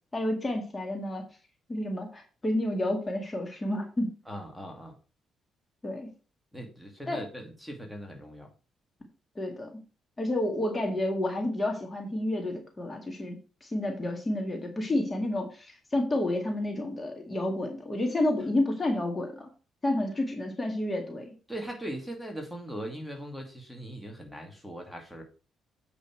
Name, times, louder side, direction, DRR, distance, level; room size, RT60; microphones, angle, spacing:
voice 1, 0.1-1.2 1.7-4.1 5.8-6.1 7.1-7.2 9.4-9.7 10.2-19.5 19.8-21.3, left 1 dB, 25° left, 3 dB, 2.0 m, -30 dB
voice 2, 4.3-4.9 6.5-8.5 21.5-25.2, right 1 dB, ahead, 1 dB, 2.2 m, -40 dB
8.3 x 5.3 x 4.5 m, 0.34 s
cardioid pair, 90°, 0 cm